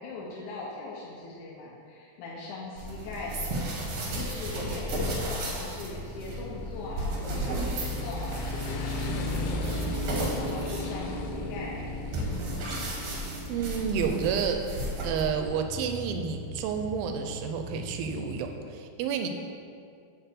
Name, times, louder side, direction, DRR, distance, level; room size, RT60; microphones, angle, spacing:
voice 1, 0.0-9.8 10.3-12.0, left 2 dB, 75° left, -4 dB, 1.9 m, -40 dB
Motorcycle, 2.8-18.6, left 1 dB, 90° left, 2.8 m, -37 dB
sound 1, 2.8-15.5, right 1 dB, 65° right, 1.7 m, -34 dB
voice 2, 13.5-19.3, right 7 dB, 80° right, 5 dB, 2.3 m, -30 dB
8.0 x 4.0 x 6.6 m, 2.3 s
omnidirectional pair, 4.5 m